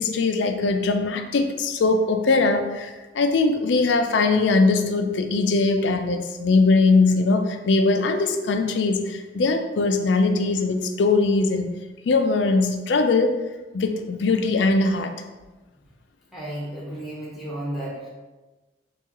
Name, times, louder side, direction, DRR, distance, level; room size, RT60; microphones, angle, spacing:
voice 1, 0.0-11.7 12.1-13.3 13.7-15.1, left 3 dB, 80° left, 6 dB, 0.4 m, -21 dB
voice 2, 16.3-18.1, right 1 dB, ahead, -6 dB, 0.8 m, -33 dB
4.6 x 2.4 x 2.9 m, 1.2 s
head